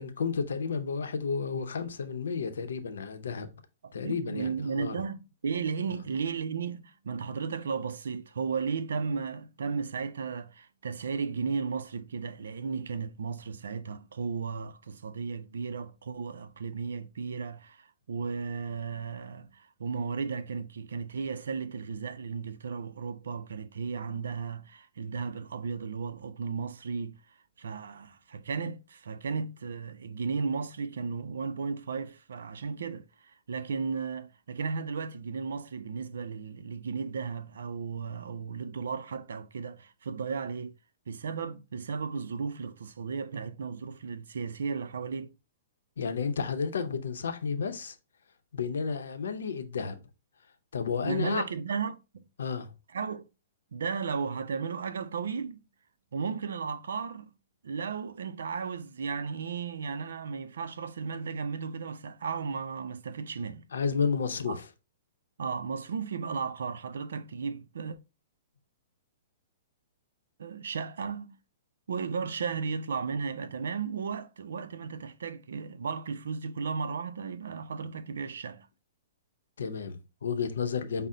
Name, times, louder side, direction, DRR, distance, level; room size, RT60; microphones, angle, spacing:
voice 1, 0.0-3.5 3.9-5.0 46.0-48.0 48.5-50.0 50.7-51.4 52.4-52.7 63.7-64.6 79.6-81.1, left 5 dB, 85° left, 0.7 m, -32 dB
voice 2, 3.8-27.2 27.6-40.7 41.1-45.3 51.0-52.2 52.9-53.3 53.7-55.6 56.1-57.3 57.6-63.7 64.5-64.6 65.4-68.0 70.4-71.4 71.9-78.7, right 5 dB, 85° right, 0.4 m, -35 dB
5.5 x 2.0 x 3.6 m
hypercardioid pair, 155°, 0 cm